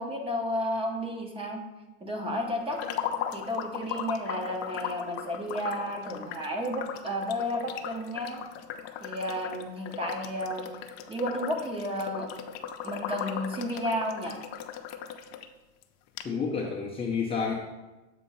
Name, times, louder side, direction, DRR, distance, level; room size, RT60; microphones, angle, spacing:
voice 1, 0.0-1.6 2.0-2.8 3.3-8.4 9.0-10.7 11.1-12.3 12.8-14.4, equal, 15° right, 2 dB, 0.8 m, -32 dB
sound 1, 2.7-15.5 15.8-15.9 16.2-16.3, left 9 dB, 55° left, 0.6 m, -38 dB
voice 2, 16.2-17.5, left 5 dB, 15° left, -4 dB, 0.5 m, -29 dB
7.6 x 2.7 x 5.3 m, 1.1 s
supercardioid pair, 130°, 36 cm